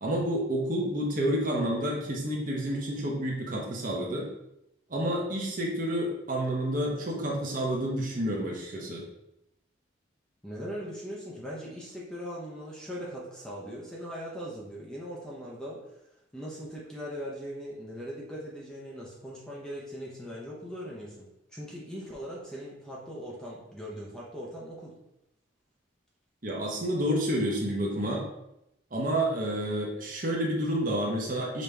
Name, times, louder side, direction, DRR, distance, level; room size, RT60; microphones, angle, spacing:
voice 1, 0.0-4.3 4.9-9.0 26.4-28.2 28.9-31.6, right 1 dB, 40° right, -2 dB, 0.9 m, -29 dB
voice 2, 10.4-15.8 16.3-24.9, equal, 5° left, -5 dB, 0.7 m, -40 dB
5.2 x 2.9 x 3.4 m, 0.84 s
head